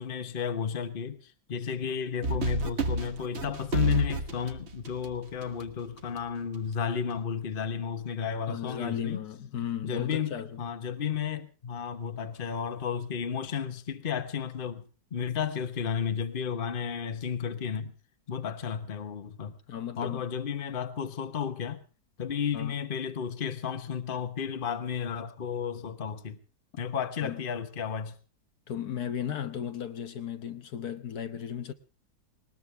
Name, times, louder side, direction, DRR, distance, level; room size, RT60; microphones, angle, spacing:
voice 1, 0.0-9.2 9.8-14.8 15.1-17.9 18.3-19.6 20.0-21.8 22.2-26.4 26.8-28.1, left 7 dB, 35° left, 1.2 m, -33 dB
sound 1, 2.2-5.7, right 2 dB, 45° right, 1.5 m, -30 dB
voice 2, 8.5-10.6 19.7-20.3 22.5-22.7 27.2-27.4 28.7-31.7, left 9 dB, 70° left, 1.5 m, -35 dB
20.0 x 19.5 x 3.4 m
omnidirectional pair, 1.7 m